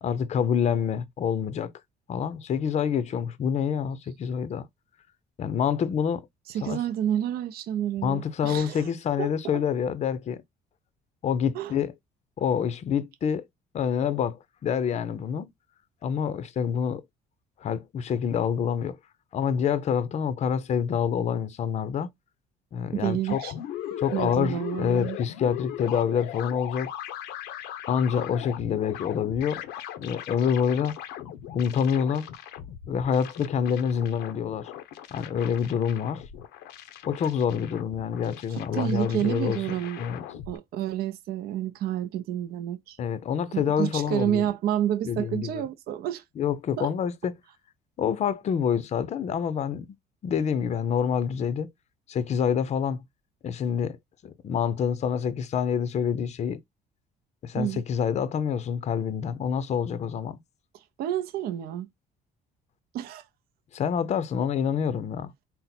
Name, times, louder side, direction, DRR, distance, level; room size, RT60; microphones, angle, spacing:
voice 1, 0.0-1.7 2.1-4.7 5.4-6.2 6.6-6.8 8.0-10.4 11.2-11.9 12.4-13.5 13.7-15.5 16.0-17.0 17.6-19.0 19.3-22.1 22.7-23.4 24.0-26.9 27.9-29.6 30.0-31.0 31.5-32.3 32.9-34.7 35.1-36.2 37.0-39.6 40.0-40.2 43.0-44.5 45.1-45.6 46.4-47.3 48.0-49.9 50.2-51.7 52.1-53.0 53.4-54.0 54.2-56.6 57.4-60.4 63.7-65.3, left 7 dB, 40° left, 0.5 m, -27 dB
voice 2, 6.5-8.9 9.2-9.3 11.5-11.7 22.9-23.5 24.1-25.2 38.5-40.0 40.5-43.0 43.5-46.2 46.8-46.9 57.5-57.8 61.0-61.9 62.9-63.3, right 11 dB, 65° right, 0.5 m, -29 dB
sound 1, 23.3-40.6, left 11 dB, 90° left, 0.7 m, -39 dB
4.0 x 2.0 x 4.1 m
cardioid pair, 110°, 17 cm